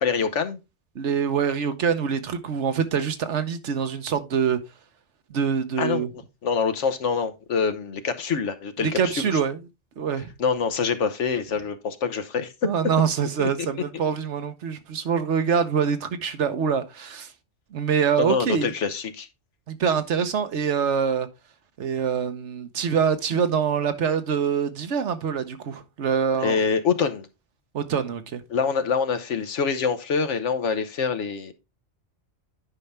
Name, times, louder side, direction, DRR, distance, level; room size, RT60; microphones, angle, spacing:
voice 1, 0.0-0.6 5.8-6.1 6.4-9.3 10.4-12.7 13.4-13.5 18.2-19.3 26.4-27.3 28.5-31.5, left 5 dB, 90° left, 1.3 m, -25 dB
voice 2, 0.9-4.6 5.3-6.1 8.8-9.6 10.0-10.3 12.6-17.3 17.7-18.7 19.7-21.3 21.8-26.6 27.7-28.4, right 7 dB, 80° right, 1.2 m, -25 dB
9.7 x 5.5 x 3.3 m
omnidirectional pair, 1.2 m